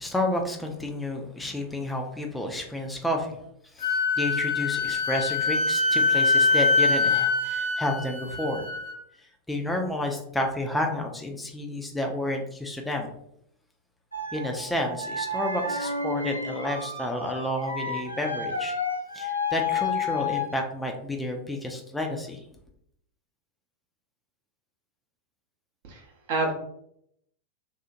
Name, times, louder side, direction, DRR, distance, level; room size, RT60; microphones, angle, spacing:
voice 1, 0.0-3.4 3.7-8.6 9.5-13.1 14.3-18.8 19.1-22.4, left 1 dB, 5° left, 2 dB, 0.3 m, -30 dB
Wind instrument woodwind instrument, 3.8-9.0, left 3 dB, 50° left, 0.7 m, -24 dB
sound 1, 14.1-20.6, left 4 dB, 90° left, 0.4 m, -31 dB
voice 2, 25.9-26.5, right 3 dB, 55° right, 1 dB, 0.6 m, -28 dB
2.8 x 2.0 x 2.5 m, 0.73 s
figure-of-eight pair, 90°, 0 cm